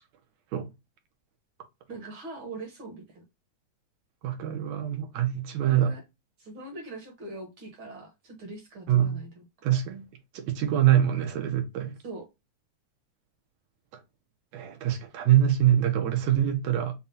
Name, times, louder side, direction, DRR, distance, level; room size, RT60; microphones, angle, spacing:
voice 1, 1.9-3.2 5.7-6.0 6.4-9.4 12.0-12.3 16.4-16.5, right 2 dB, 55° right, 1.6 m, -42 dB
voice 2, 4.2-5.9 8.9-9.2 9.6-10.1 10.3-11.9 13.9-14.0 14.5-16.9, right 11 dB, 75° right, 2.1 m, -24 dB
5.6 x 2.3 x 2.6 m
omnidirectional pair, 3.4 m